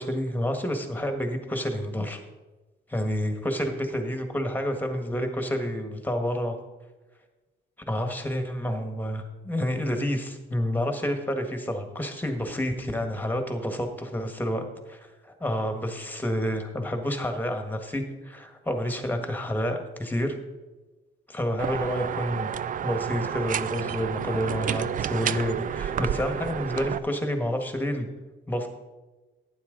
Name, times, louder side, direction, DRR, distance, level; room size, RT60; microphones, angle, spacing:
voice 1, 0.0-2.2 2.9-6.6 7.9-20.4 21.3-22.5 22.8-28.1 28.5-28.7, equal, 10° left, 5 dB, 1.7 m, -29 dB
sound 1, 21.6-27.0, right 9 dB, 45° right, 0.4 m, -30 dB
11.5 x 9.4 x 4.0 m, 1.2 s
cardioid pair, 90°, 20 cm